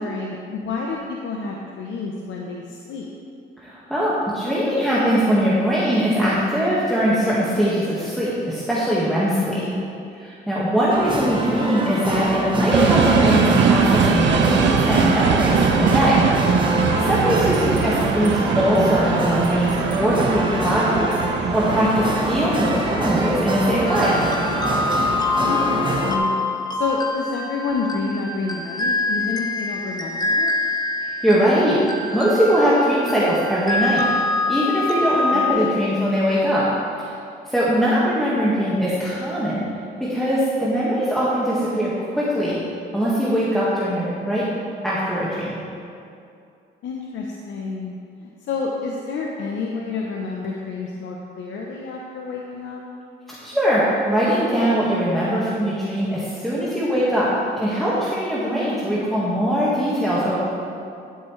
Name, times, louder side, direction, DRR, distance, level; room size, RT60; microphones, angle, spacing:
voice 1, 0.0-3.1 9.4-9.9 17.2-17.8 22.2-22.5 25.4-26.4 26.7-30.5 35.3-35.6 46.8-52.8, left 4 dB, 70° left, -1 dB, 0.9 m, -29 dB
voice 2, 3.6-9.6 10.2-16.3 17.0-24.2 31.2-34.1 34.5-36.7 37.5-39.7 40.0-42.6 42.9-44.5 44.8-45.6 53.4-57.3 57.6-60.4, equal, ahead, -9 dB, 1.8 m, -21 dB
sound 1, 10.9-26.2, right 1 dB, 25° right, 1.3 m, -25 dB
sound 2, 12.7-25.3, right 6 dB, 65° right, 0.7 m, -22 dB
sound 3, 23.9-35.5, left 2 dB, 20° left, 0.9 m, -25 dB
11.5 x 8.4 x 3.3 m, 2.5 s
cardioid pair, 90°, 20 cm